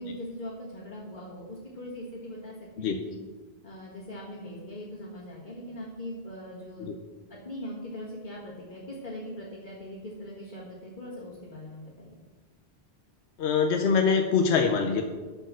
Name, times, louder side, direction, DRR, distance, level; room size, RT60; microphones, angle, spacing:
voice 1, 0.0-3.2 3.6-7.0 7.3-12.2, left 1 dB, 50° left, -6 dB, 1.9 m, -41 dB
voice 2, 13.4-15.0, left 5 dB, 90° left, 4 dB, 1.1 m, -24 dB
12.5 x 4.5 x 6.2 m, 1.3 s
omnidirectional pair, 1.1 m